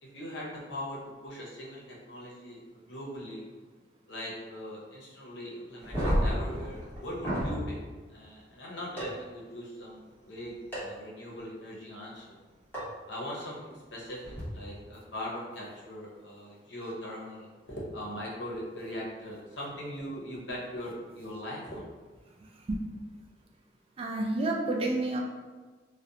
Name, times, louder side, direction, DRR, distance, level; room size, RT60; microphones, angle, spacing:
voice 1, 0.0-2.6 2.9-3.5 4.1-7.8 8.1-12.4 13.1-21.9, equal, 70° left, -3 dB, 0.7 m, -40 dB
sound 1, 5.8-7.6 9.0-9.1 10.7-10.8 12.7-12.8 14.2-14.4, equal, 10° left, 1.0 m, -30 dB
voice 2, 22.4-22.8 24.0-25.2, right 2 dB, 30° right, 0 dB, 0.3 m, -30 dB
2.4 x 2.1 x 2.7 m, 1.4 s
head